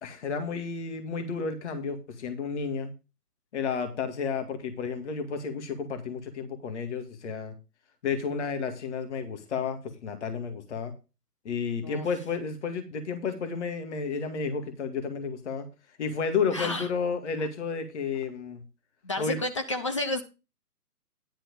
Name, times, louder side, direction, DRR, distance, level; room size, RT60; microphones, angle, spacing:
voice 1, 0.0-2.9 3.5-7.5 8.0-10.9 11.4-15.7 16.0-18.6 19.2-19.4, left 5 dB, 45° left, 8 dB, 2.1 m, -32 dB
voice 2, 16.5-16.9 19.0-20.2, left 2 dB, 20° left, 7 dB, 0.6 m, -30 dB
11.0 x 4.2 x 7.1 m, 0.28 s
figure-of-eight pair, 140°, 47 cm